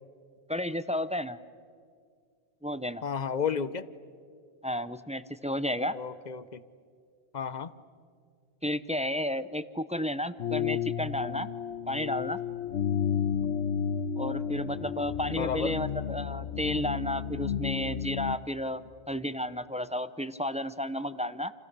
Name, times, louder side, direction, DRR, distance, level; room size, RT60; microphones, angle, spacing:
voice 1, 0.5-1.4 2.6-3.0 4.6-6.0 8.6-11.5 11.9-12.4 14.2-18.8 19.1-21.5, left 1 dB, 10° right, 13 dB, 0.6 m, -32 dB
voice 2, 3.0-3.9 5.9-6.6 7.3-7.7 15.3-15.8 18.8-18.9, left 6 dB, 45° left, 15 dB, 0.9 m, -32 dB
sound 1, 10.4-18.4, left 8 dB, 80° left, 1.2 m, -32 dB
29.5 x 29.0 x 6.8 m, 2.2 s
omnidirectional pair, 1.1 m